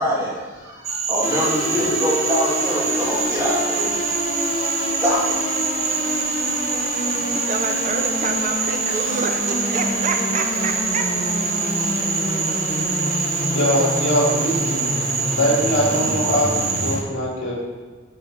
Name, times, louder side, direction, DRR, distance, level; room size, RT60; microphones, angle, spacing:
voice 1, 0.0-4.0 4.8-5.4, equal, 15° right, -8 dB, 2.4 m, -24 dB
Cricket / Frog, 0.8-17.0, right 5 dB, 70° right, 0.8 m, -25 dB
sound 1, 1.2-17.0, left 1 dB, 35° left, 0.8 m, -27 dB
voice 2, 7.3-11.1, right 4 dB, 40° right, 5 dB, 0.4 m, -28 dB
voice 3, 13.5-14.9 15.3-17.6, equal, 80° left, -4 dB, 2.1 m, -22 dB
11.0 x 3.9 x 3.9 m, 1.4 s
head